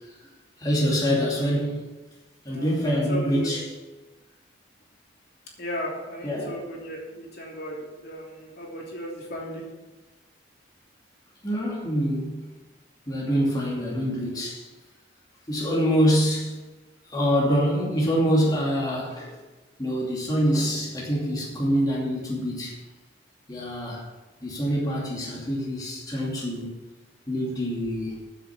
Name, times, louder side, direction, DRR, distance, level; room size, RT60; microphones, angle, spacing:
voice 1, 0.6-1.9 2.4-3.7 6.2-6.5 11.4-12.4 13.1-14.7 15.5-16.6 17.1-19.3 19.8-22.7 23.5-24.0 24.4-26.7 27.3-28.2, equal, 20° left, -4 dB, 2.7 m, -25 dB
voice 2, 3.1-3.5 5.6-9.6, equal, 60° left, -2 dB, 3.0 m, -35 dB
9.6 x 8.0 x 7.2 m, 1.2 s
head